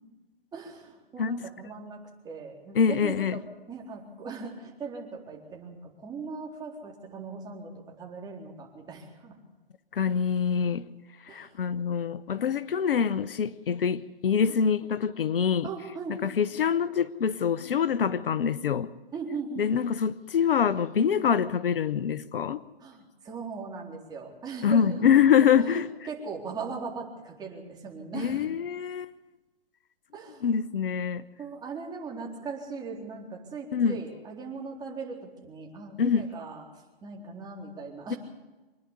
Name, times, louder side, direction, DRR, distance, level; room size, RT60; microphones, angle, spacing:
voice 1, 0.5-3.4 3.7-9.4 11.3-11.5 15.6-16.4 19.1-19.9 22.8-25.0 25.6-28.5 30.1-30.5 31.4-36.6 37.0-38.2, right 4 dB, 15° right, 4.0 m, -39 dB
voice 2, 2.7-3.4 9.9-10.9 11.2-15.7 16.2-18.9 19.6-22.6 24.6-25.9 28.1-29.1 30.4-31.2 33.7-34.0 36.0-36.2, left 7 dB, 65° left, 1.0 m, -25 dB
25.5 x 11.0 x 9.9 m
hypercardioid pair, 140°, 30 cm